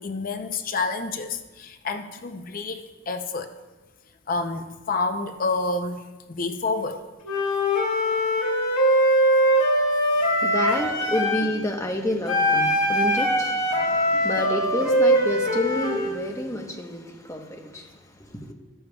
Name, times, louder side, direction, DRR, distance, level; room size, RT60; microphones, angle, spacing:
voice 1, 0.0-3.5 4.3-7.1, left 3 dB, 45° left, 0.6 m, -29 dB
Wind instrument woodwind instrument, 7.2-11.5 12.3-16.2, equal, 90° left, 2.4 m, -22 dB
voice 2, 10.2-18.5, left 1 dB, 15° left, 1.0 m, -30 dB
14.0 x 12.0 x 2.3 m
head